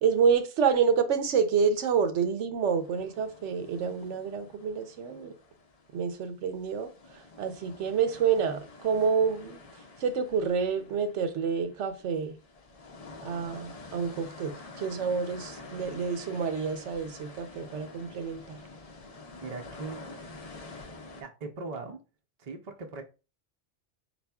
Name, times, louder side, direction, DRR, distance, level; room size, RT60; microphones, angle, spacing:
voice 1, 0.0-5.3 5.9-6.9 7.4-9.6 10.0-12.4 13.2-18.6, right 6 dB, 85° right, 1.0 m, -28 dB
sound 1, 2.8-6.3 6.6-21.2, left 3 dB, 40° left, 0.6 m, -48 dB
voice 2, 19.4-20.0 21.2-22.0 22.4-23.0, right 3 dB, 45° right, 0.6 m, -39 dB
4.1 x 4.0 x 2.3 m
omnidirectional pair, 1.2 m